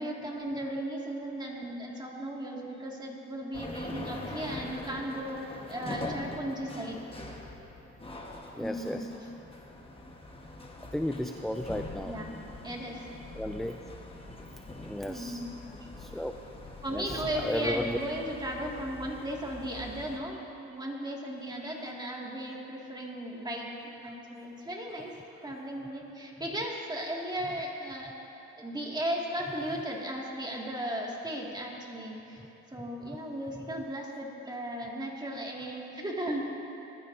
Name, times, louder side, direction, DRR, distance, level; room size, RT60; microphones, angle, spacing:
voice 1, 0.0-7.0 8.6-9.1 12.0-12.3 12.6-13.0 15.1-15.5 16.8-25.1 25.4-28.1 28.6-32.4 32.7-36.5, right 1 dB, 15° right, -2 dB, 2.4 m, -36 dB
sound 1, 3.5-20.2, left 2 dB, 20° left, 1.4 m, -43 dB
voice 2, 8.6-9.1 10.9-12.1 13.3-13.8 14.5-15.4 16.0-16.3 16.9-18.0 21.6-21.8 32.4-32.5 33.6-33.7, left 1 dB, ahead, 6 dB, 0.4 m, -34 dB
21.0 x 13.0 x 2.8 m, 3.0 s
cardioid pair, 90°, 30 cm